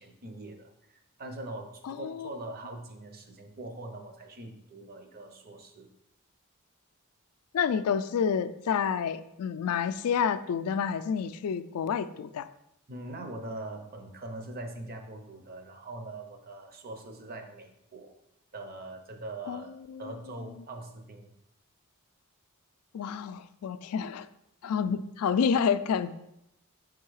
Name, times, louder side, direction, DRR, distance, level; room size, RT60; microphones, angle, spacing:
voice 1, 0.0-5.9 12.9-18.1 18.5-19.7 20.0-21.3 24.6-24.8, right 2 dB, 45° right, 5 dB, 0.8 m, -42 dB
voice 2, 1.8-2.3 7.5-12.5 19.5-19.6 19.9-20.1 22.9-24.3 24.6-26.2, left 7 dB, 70° left, 13 dB, 0.3 m, -29 dB
5.4 x 3.8 x 4.7 m, 0.81 s
head